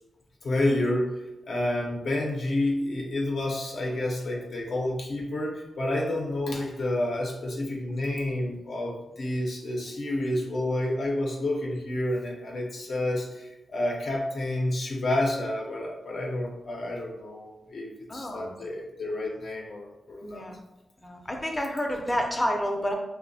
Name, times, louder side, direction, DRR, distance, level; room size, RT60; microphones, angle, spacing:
voice 1, 0.4-1.1 1.5-20.4, left 1 dB, 65° left, -1 dB, 0.5 m, -29 dB
voice 2, 18.1-18.5 20.2-20.5 21.0-22.9, equal, 15° left, 2 dB, 0.4 m, -29 dB
2.6 x 2.1 x 2.6 m, 0.96 s
cardioid pair, 90°, 0 cm